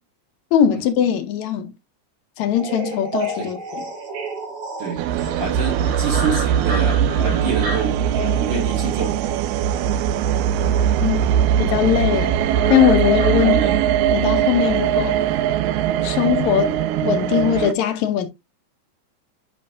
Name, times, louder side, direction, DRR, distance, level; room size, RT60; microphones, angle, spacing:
voice 1, 0.5-1.7 2.4-3.9 11.0-11.2 11.6-12.4 12.7-13.6 14.1-15.2 16.0-16.8 17.0-18.3, left 10 dB, 75° left, 2.1 m, -20 dB
sound 1, 2.5-14.0, right 1 dB, 65° right, 3.7 m, -33 dB
sound 2, 5.0-17.7, right 9 dB, 80° right, 1.9 m, -20 dB
voice 2, 5.4-9.2 13.4-13.8, right 5 dB, 45° right, 1.8 m, -27 dB
9.5 x 5.1 x 2.5 m
omnidirectional pair, 3.4 m